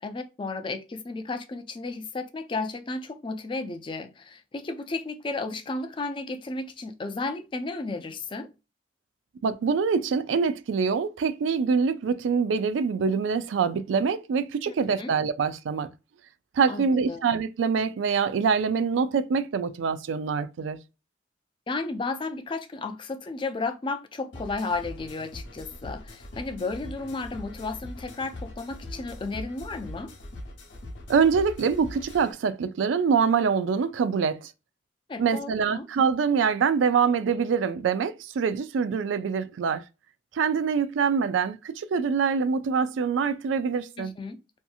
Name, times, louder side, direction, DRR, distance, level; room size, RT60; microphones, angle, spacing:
voice 1, 0.0-8.5 14.7-15.1 16.7-17.2 21.7-30.1 35.1-35.8 44.0-44.4, left 3 dB, 25° left, 0.4 m, -33 dB
voice 2, 9.4-15.9 16.5-20.8 31.1-34.5 35.2-39.8 40.3-44.1, right 6 dB, 80° right, 0.3 m, -25 dB
sound 1, 24.3-32.3, left 1 dB, 75° left, 0.9 m, -41 dB
2.7 x 2.6 x 2.3 m
head